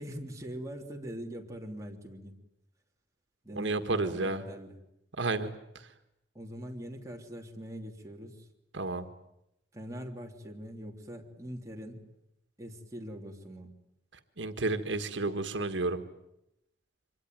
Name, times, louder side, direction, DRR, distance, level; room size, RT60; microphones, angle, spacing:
voice 1, 0.0-2.4 3.4-4.8 6.3-8.5 9.7-12.1 12.6-13.7, equal, 15° right, 1 dB, 3.1 m, -42 dB
voice 2, 3.5-4.4 5.2-5.5 8.7-9.1 14.4-16.0, right 2 dB, 80° right, 8 dB, 1.6 m, -31 dB
25.5 x 23.0 x 9.3 m, 0.84 s
head